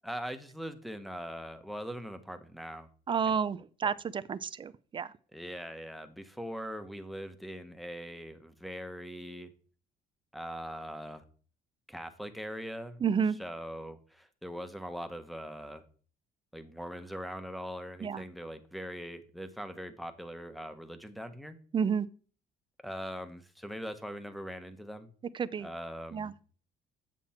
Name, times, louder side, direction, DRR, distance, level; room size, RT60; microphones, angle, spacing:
voice 1, 0.0-2.9 3.2-3.4 3.8-3.9 5.3-9.5 10.3-11.2 11.9-13.0 13.4-15.8 16.5-21.6 22.8-25.1 25.6-26.3, equal, ahead, 0.9 m, -41 dB
voice 2, 3.1-5.1 13.0-13.4 18.0-18.2 21.7-22.1 25.3-25.7 26.1-26.3, right 6 dB, 30° right, 0.4 m, -30 dB
7.6 x 7.2 x 4.3 m
cardioid pair, 110°, 17 cm